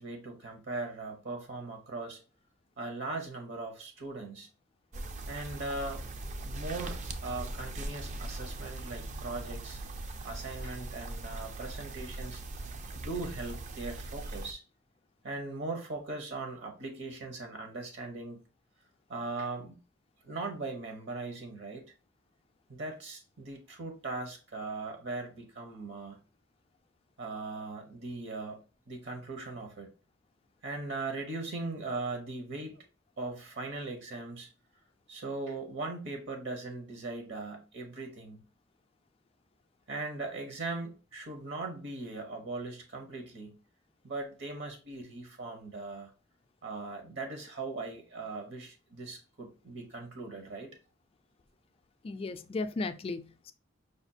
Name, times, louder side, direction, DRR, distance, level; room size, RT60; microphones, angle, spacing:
voice 1, 0.0-2.2 2.8-4.5 5.3-6.2 6.4-9.8 10.2-12.4 12.9-14.6 15.2-18.4 19.1-19.8 20.2-21.8 22.7-26.2 27.2-28.6 28.9-29.9 30.6-32.9 33.2-34.5 35.1-38.4 39.9-43.6 44.0-46.1 46.6-50.7, right 3 dB, 65° right, 0.9 m, -39 dB
sound 1, 4.9-14.5, right 2 dB, 40° right, 0.4 m, -40 dB
voice 2, 52.0-53.5, left 3 dB, 30° left, 0.3 m, -35 dB
5.0 x 2.4 x 2.7 m
head